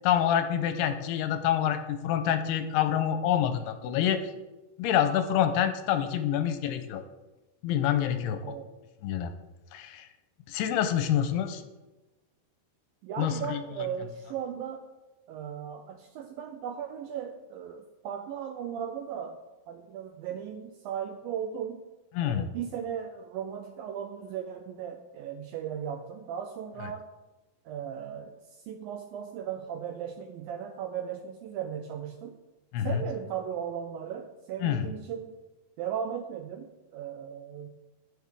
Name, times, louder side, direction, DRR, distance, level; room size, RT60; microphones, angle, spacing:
voice 1, 0.0-4.2 4.8-7.0 7.6-8.4 9.0-9.3 9.7-10.1 10.5-11.6 13.2-13.6 22.2-22.5 32.7-33.0 34.6-34.9, left 10 dB, 90° left, 8 dB, 2.7 m, -27 dB
voice 2, 13.0-14.9 15.3-21.8 22.2-27.1 27.7-32.4 32.8-35.4 35.8-37.7, right 8 dB, 85° right, 6 dB, 2.1 m, -37 dB
16.5 x 6.3 x 3.6 m, 1.1 s
omnidirectional pair, 4.7 m